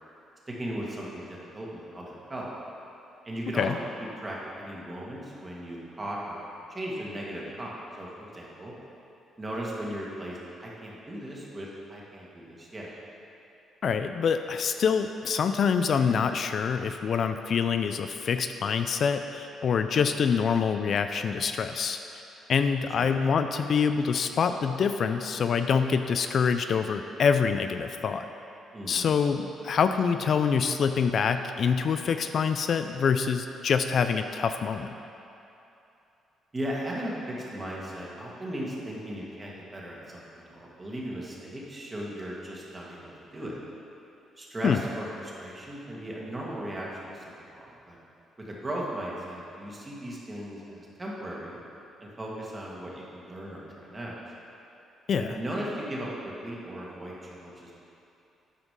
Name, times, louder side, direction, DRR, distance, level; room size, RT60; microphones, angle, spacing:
voice 1, 0.5-2.5 3.2-3.7 4.2-6.4 6.7-8.7 9.4-12.9 23.0-23.2 28.7-29.1 36.5-43.6 44.4-47.2 47.5-48.0 48.4-51.6 52.0-54.2 55.1-57.7, right 1 dB, 25° right, -4 dB, 1.9 m, -37 dB
voice 2, 13.8-22.0 22.5-28.3 28.9-34.9 44.6-44.8 55.1-55.4, left 6 dB, 55° left, 8 dB, 0.3 m, -25 dB
9.8 x 5.0 x 5.2 m, 2.8 s
cardioid pair, 90°, 0 cm